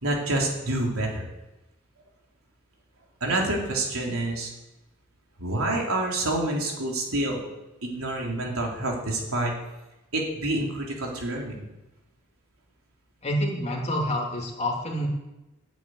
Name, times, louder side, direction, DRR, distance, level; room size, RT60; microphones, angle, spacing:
voice 1, 0.0-1.3 3.2-4.5 5.4-7.4 7.8-9.5 10.1-11.6, right 1 dB, 80° right, -1 dB, 3.6 m, -27 dB
voice 2, 13.2-15.1, equal, 30° left, 0 dB, 2.8 m, -27 dB
11.0 x 9.3 x 9.6 m, 1.0 s
head